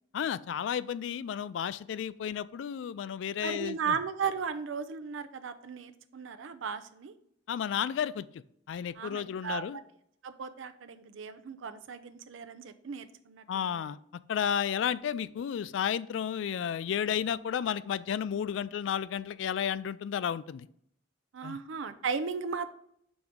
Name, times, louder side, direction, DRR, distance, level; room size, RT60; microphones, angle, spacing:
voice 1, 0.1-4.0 7.5-9.8 13.5-14.0 14.3-20.7 21.4-21.6, left 8 dB, 75° left, 16 dB, 0.3 m, -32 dB
voice 2, 3.4-7.1 9.0-9.6 10.2-13.8 21.3-22.7, right 6 dB, 85° right, 10 dB, 0.5 m, -36 dB
6.1 x 3.6 x 5.1 m, 0.68 s
head